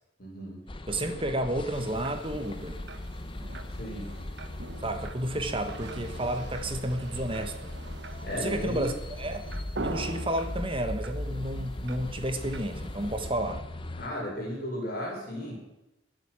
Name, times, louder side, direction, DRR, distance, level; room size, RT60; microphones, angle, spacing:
voice 1, 0.2-0.6 3.7-4.1 8.2-8.9 14.0-15.5, equal, 45° left, -2 dB, 5.8 m, -35 dB
sound 1, 0.7-14.1, left 1 dB, 25° left, 0.8 m, -39 dB
voice 2, 0.9-2.8 4.8-7.7 8.3-8.9 9.2-9.4 9.8-13.6, right 1 dB, 25° right, 7 dB, 1.3 m, -31 dB
sound 2, 1.7-13.3, right 2 dB, 55° right, 1.2 m, -44 dB
22.0 x 7.9 x 6.2 m, 0.94 s
head